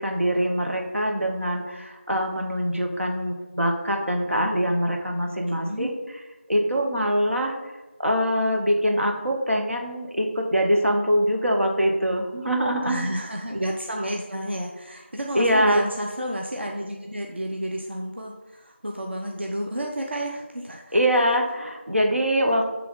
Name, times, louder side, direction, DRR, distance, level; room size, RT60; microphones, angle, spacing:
voice 1, 0.0-5.9 6.5-7.5 8.0-13.1 15.3-15.8 20.9-22.7, equal, 90° right, 1 dB, 1.1 m, -23 dB
voice 2, 5.5-6.0 12.8-21.0, equal, 60° right, 0 dB, 0.7 m, -31 dB
8.2 x 3.4 x 3.9 m, 1.1 s
figure-of-eight pair, 175°, 7 cm